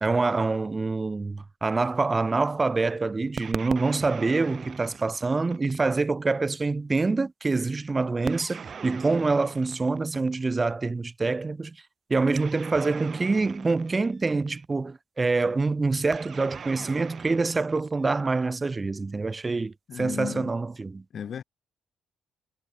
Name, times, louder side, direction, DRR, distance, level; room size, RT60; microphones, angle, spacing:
voice 1, 0.0-11.8 12.1-21.0, right 3 dB, 25° right, 1.2 m, -26 dB
sound 1, 3.4-6.0 8.3-10.6 12.3-14.7 16.1-18.6, right 6 dB, 45° right, 0.6 m, -40 dB
voice 2, 19.9-20.5 21.1-21.4, left 8 dB, 55° left, 0.7 m, -34 dB
cardioid pair, 90°, 0 cm